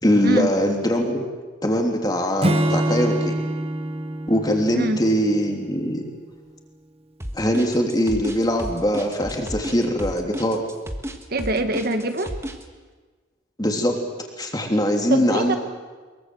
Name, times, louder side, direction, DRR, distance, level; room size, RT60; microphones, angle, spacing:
voice 1, 0.0-1.2 1.6-3.3 4.3-6.0 7.3-10.6 13.6-14.0 14.4-15.6, equal, 20° left, 2 dB, 3.2 m, -21 dB
Acoustic guitar / Strum, 2.4-5.9, right 1 dB, 30° right, 1.1 m, -25 dB
sound 1, 7.2-12.6, equal, 15° right, 1.6 m, -32 dB
voice 2, 11.3-12.3 15.1-15.5, right 1 dB, 50° right, 7 dB, 1.5 m, -23 dB
23.0 x 23.0 x 7.9 m, 1.4 s
head